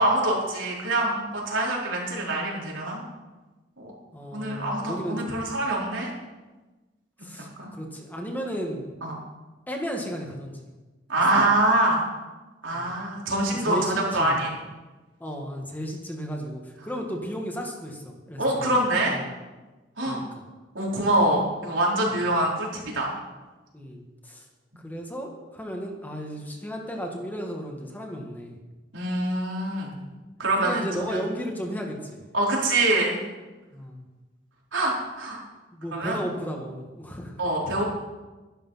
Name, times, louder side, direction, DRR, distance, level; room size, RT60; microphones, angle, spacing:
voice 1, 0.0-3.0 3.8-3.9 4.3-6.1 7.4-7.7 9.0-9.1 11.1-12.0 12.6-14.5 18.4-19.2 20.0-20.2 20.7-23.1 24.8-24.9 28.9-29.9 30.4-31.2 32.3-33.2 34.7-35.4 35.9-36.2 37.4-37.9, right 1 dB, 85° right, -3 dB, 4.3 m, -25 dB
voice 2, 4.1-5.3 7.2-8.9 9.7-10.6 11.3-11.4 12.7-12.9 13.5-14.4 15.2-18.7 19.1-19.3 20.0-20.2 23.7-24.4 24.8-28.6 29.9-30.1 30.6-32.2 33.7-34.1 35.7-37.3, equal, 10° left, 1 dB, 1.8 m, -34 dB
11.5 x 11.5 x 5.8 m, 1.2 s
head